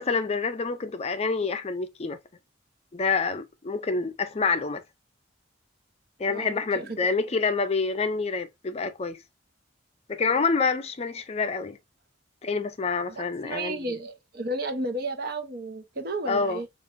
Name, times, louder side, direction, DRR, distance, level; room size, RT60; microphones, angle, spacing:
voice 1, 0.0-2.2 2.9-4.8 6.2-9.2 10.1-11.8 12.4-13.8 16.3-16.6, left 4 dB, 35° left, 0.5 m, -27 dB
voice 2, 6.3-6.9 13.1-16.7, right 2 dB, 55° right, 0.9 m, -33 dB
5.1 x 2.5 x 2.6 m
head